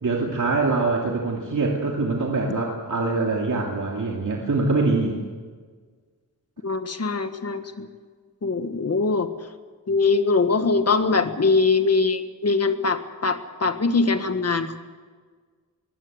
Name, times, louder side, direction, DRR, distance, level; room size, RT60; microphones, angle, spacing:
voice 1, 0.0-5.2, right 3 dB, 50° right, -1 dB, 2.6 m, -24 dB
voice 2, 6.6-7.9 8.4-9.3 9.9-14.8, left 4 dB, 40° left, 9 dB, 1.5 m, -22 dB
23.0 x 17.5 x 8.0 m, 1.6 s
wide cardioid pair, 150°, 38 cm